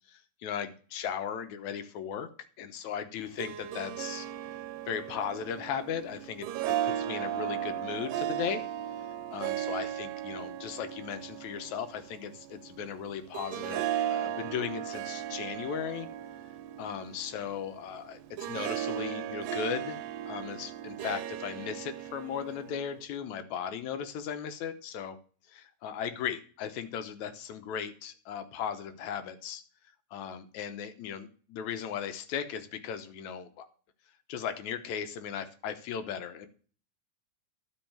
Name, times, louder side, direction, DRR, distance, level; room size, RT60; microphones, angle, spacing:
voice 1, 0.1-2.3 2.6-4.3 4.9-8.7 9.3-16.1 16.8-18.2 18.5-20.0 20.3-25.2 25.5-29.6 30.1-33.7 34.3-36.5, left 8 dB, 70° left, 10 dB, 2.0 m, -37 dB
Harp, 3.2-23.0, right 11 dB, 85° right, 2.5 m, -36 dB
12.0 x 5.4 x 7.2 m, 0.42 s
omnidirectional pair, 3.9 m